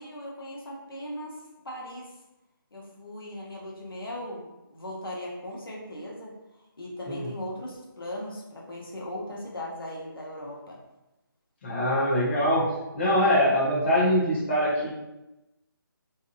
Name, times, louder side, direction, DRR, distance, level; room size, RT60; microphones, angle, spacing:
voice 1, 0.0-1.4 1.6-2.1 2.7-6.3 6.8-10.8, left 1 dB, 75° left, -3 dB, 0.8 m, -38 dB
voice 2, 11.6-12.7 12.9-14.9, equal, 30° left, -6 dB, 0.6 m, -23 dB
2.6 x 2.4 x 2.5 m, 0.97 s
figure-of-eight pair, 160°, 12 cm